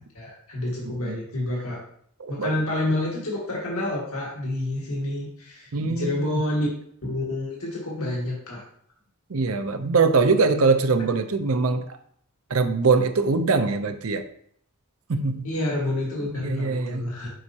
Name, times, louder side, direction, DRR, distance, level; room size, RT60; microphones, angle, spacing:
voice 1, 0.1-1.8 2.3-6.7 7.1-8.6 15.4-17.3, left 1 dB, 75° left, -4 dB, 1.9 m, -28 dB
voice 2, 2.2-2.5 5.7-6.1 9.3-12.0 12.5-14.2 15.1-15.4 16.3-17.0, right 4 dB, 70° right, 8 dB, 0.6 m, -22 dB
7.6 x 5.3 x 2.9 m, 0.64 s
head